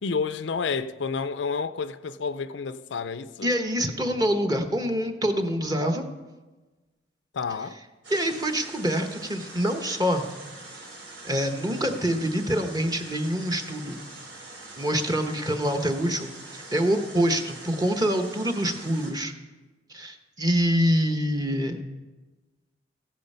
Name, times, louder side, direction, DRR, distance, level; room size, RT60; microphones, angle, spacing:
voice 1, 0.0-3.5 7.3-7.8, left 5 dB, 70° left, 0.5 m, -30 dB
voice 2, 3.4-6.0 8.1-10.2 11.2-14.0 14.8-19.3 19.9-21.8, equal, 20° right, 1.1 m, -25 dB
sound 1, 8.0-19.1, right 2 dB, 85° right, 3.7 m, -44 dB
15.0 x 10.5 x 5.6 m
head